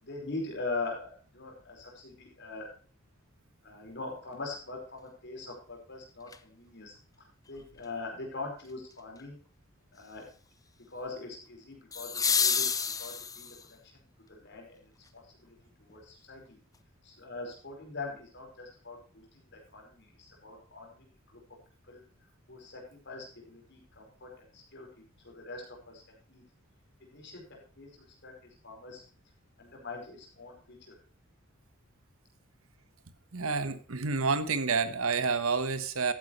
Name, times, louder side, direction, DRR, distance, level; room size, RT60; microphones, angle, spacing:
voice 1, 0.0-2.7 3.6-7.0 7.5-9.4 9.9-10.3 10.9-12.7 13.0-14.0 14.3-16.6 17.0-21.4 21.9-22.0 22.5-24.9 25.2-26.4 27.0-29.0 29.6-30.9, left 3 dB, 55° left, 0 dB, 4.9 m, -42 dB
sound 1, 6.3-6.4 11.9-13.7 15.9-16.0, left 6 dB, 15° left, 0.6 m, -29 dB
voice 2, 33.3-36.1, right 4 dB, 80° right, 12 dB, 1.3 m, -29 dB
13.5 x 9.6 x 3.2 m, 0.40 s
head